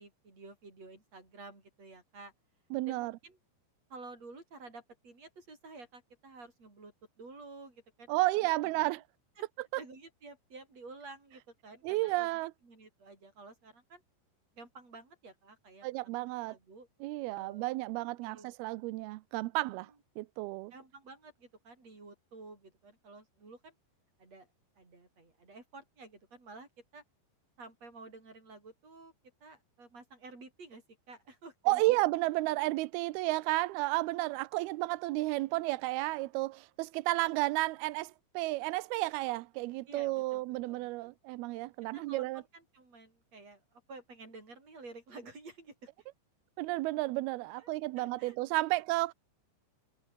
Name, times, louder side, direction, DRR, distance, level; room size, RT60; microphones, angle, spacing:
voice 1, 0.0-2.3 2.9-3.4 3.9-8.2 8.6-8.9 9.4-9.5 9.8-12.3 12.6-14.0 14.5-16.1 16.4-16.9 17.3-17.7 18.2-18.5 19.8-20.0 20.7-23.8 24.2-24.5 24.8-27.0 27.6-29.1 29.4-31.8 39.9-41.2 41.9-45.9 47.6-47.7 48.0-48.4 48.7-48.8, right 3 dB, 35° right, 9.0 m, -52 dB
voice 2, 2.7-3.1 8.1-9.0 11.8-12.5 15.8-16.6 17.0-19.9 20.2-20.7 31.7-42.4 46.6-49.1, right 20 dB, 80° right, 2.2 m, -32 dB
omnidirectional pair, 5.2 m